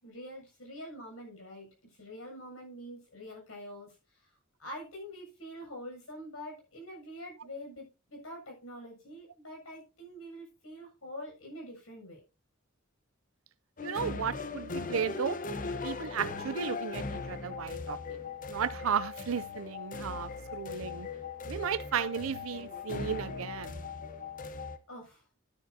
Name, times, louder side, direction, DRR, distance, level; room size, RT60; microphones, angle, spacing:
voice 1, 0.0-1.7 2.0-4.0 4.6-12.2 24.9-25.2, equal, 85° left, 7.3 m, -45 dB
sound 1, 13.8-24.8, left 4 dB, 40° left, 0.9 m, -39 dB
voice 2, 13.8-15.4 15.8-18.2 18.5-21.1 21.5-23.8, right 7 dB, 85° right, 0.5 m, -34 dB
12.0 x 10.0 x 2.7 m
head